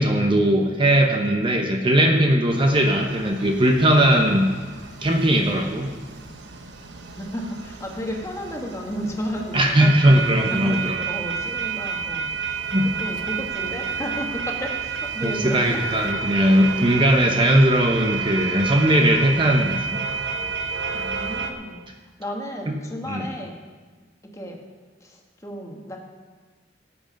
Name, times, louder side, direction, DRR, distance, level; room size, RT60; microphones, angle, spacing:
voice 1, 0.0-4.5 5.0-5.9 9.5-11.0 12.7-12.8 15.2-19.7 22.7-22.8 23.1-23.3, right 1 dB, 30° right, 3 dB, 0.9 m, -19 dB
sound 1, 2.5-21.5, right 6 dB, 75° right, 1.0 m, -30 dB
voice 2, 7.2-10.0 10.5-12.3 13.0-15.8 20.9-21.8 22.2-23.6 24.3-24.6 25.0-25.2 25.4-26.0, equal, 15° left, 1 dB, 1.5 m, -32 dB
17.0 x 7.7 x 5.2 m, 1.4 s
head